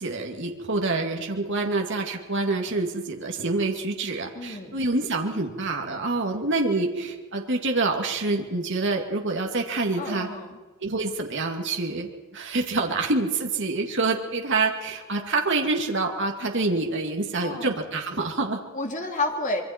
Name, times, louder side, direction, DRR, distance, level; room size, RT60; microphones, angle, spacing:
voice 1, 0.0-10.3 10.8-18.6, right 3 dB, 60° right, 2 dB, 2.2 m, -26 dB
voice 2, 4.3-4.8 10.0-10.6 12.9-13.0 17.4-17.8 18.7-19.6, left 2 dB, 35° left, 2 dB, 2.8 m, -30 dB
25.5 x 23.0 x 4.5 m, 1.3 s
head